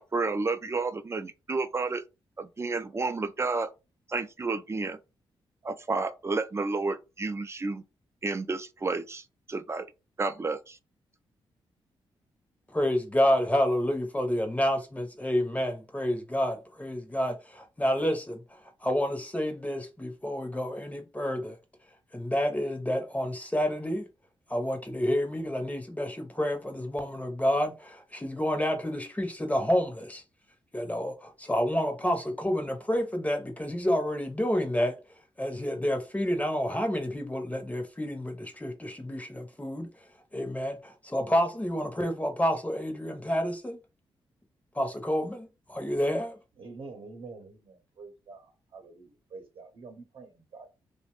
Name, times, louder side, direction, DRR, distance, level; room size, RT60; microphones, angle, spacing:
voice 1, 0.0-2.0 2.4-3.7 4.1-5.0 5.6-7.8 8.2-9.9 10.2-10.8, right 3 dB, 30° right, 0.4 m, -31 dB
voice 2, 12.7-18.4 18.8-21.6 22.1-24.1 24.5-30.2 30.7-35.0 35.4-39.9 40.3-43.8 44.7-46.4, equal, 15° left, 0.7 m, -29 dB
voice 3, 46.6-48.5 48.7-50.7, right 4 dB, 55° right, 0.8 m, -46 dB
2.8 x 2.1 x 2.9 m
cardioid pair, 65°, 10 cm